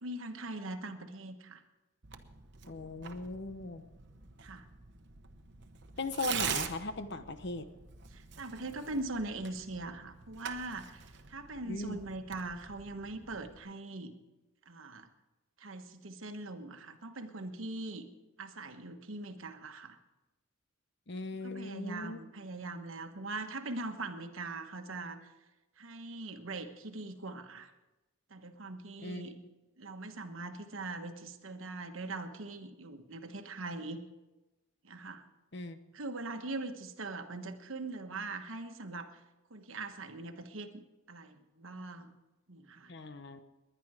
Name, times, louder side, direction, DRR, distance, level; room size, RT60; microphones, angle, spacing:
voice 1, 0.0-1.6 4.4-4.7 8.1-14.1 14.7-15.1 15.6-18.1 18.4-20.0 21.4-25.3 25.8-27.7 28.3-29.4 29.8-34.0 34.8-35.2 35.9-39.1 39.5-40.8 41.1-42.1 42.5-42.9, right 2 dB, 70° right, 7 dB, 1.2 m, -41 dB
Tearing, 2.0-13.6, right 8 dB, 55° right, 1.0 m, -44 dB
voice 2, 2.7-3.8 6.0-7.6 11.6-12.0 21.1-22.2 29.0-29.3 35.5-35.8 42.9-43.4, left 2 dB, 55° left, 10 dB, 0.9 m, -38 dB
20.0 x 10.5 x 4.9 m, 1.1 s
head